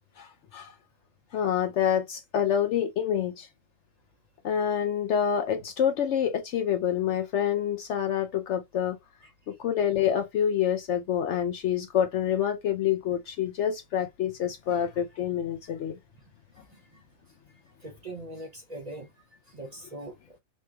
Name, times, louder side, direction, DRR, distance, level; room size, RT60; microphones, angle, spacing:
voice 1, 0.2-0.7 1.3-3.5 4.4-9.0 9.5-16.0, left 9 dB, 65° left, 0.8 m, -27 dB
voice 2, 16.6-17.0 17.8-19.1 19.5-20.4, right 1 dB, 35° right, 0.8 m, -42 dB
4.2 x 3.1 x 2.2 m
omnidirectional pair, 1.5 m